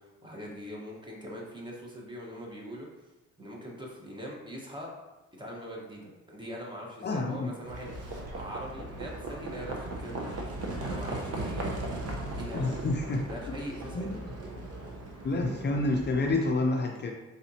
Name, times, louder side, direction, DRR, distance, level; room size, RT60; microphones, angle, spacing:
voice 1, 0.0-2.9 3.4-4.9 5.4-10.5 10.8-11.8 12.3-12.9 13.3-14.3, equal, 15° right, -2 dB, 1.2 m, -42 dB
voice 2, 7.0-7.5 12.5-13.5 13.9-14.2 15.2-17.1, left 2 dB, 35° left, 1 dB, 0.5 m, -29 dB
Livestock farm animals working animals, 7.6-16.3, right 2 dB, 55° right, 0.9 m, -37 dB
4.0 x 4.0 x 2.8 m, 1.1 s
cardioid pair, 90°, 30 cm